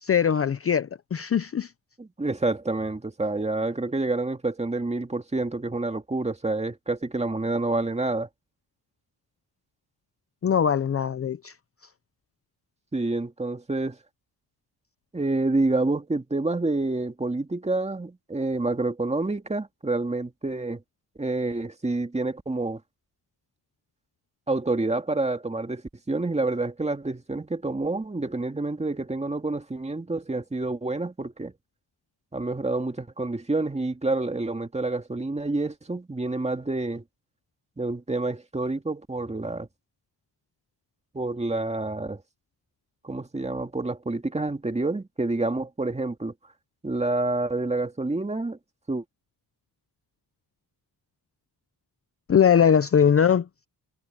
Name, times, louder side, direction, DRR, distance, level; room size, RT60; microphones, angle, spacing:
voice 1, 0.0-1.7 10.4-11.5 52.3-53.5, left 8 dB, 35° left, 0.6 m, -21 dB
voice 2, 2.0-8.3 12.9-14.0 15.1-20.8 21.2-22.8 24.5-25.8 26.1-31.5 32.3-37.0 37.8-39.7 41.1-42.2 43.0-46.3 46.8-48.6 48.9-49.0, right 2 dB, 15° right, 2.1 m, -28 dB
cardioid pair, 110°, 41 cm